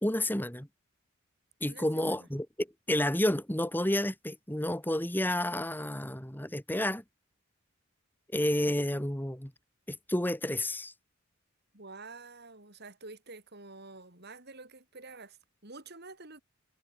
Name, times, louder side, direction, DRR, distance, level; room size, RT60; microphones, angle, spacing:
voice 1, 0.0-0.7 1.6-7.0 8.3-9.5 9.9-10.9, left 1 dB, 10° left, 2.5 m, -30 dB
voice 2, 1.7-2.3 11.7-16.4, right 3 dB, 50° right, 5.8 m, -49 dB
head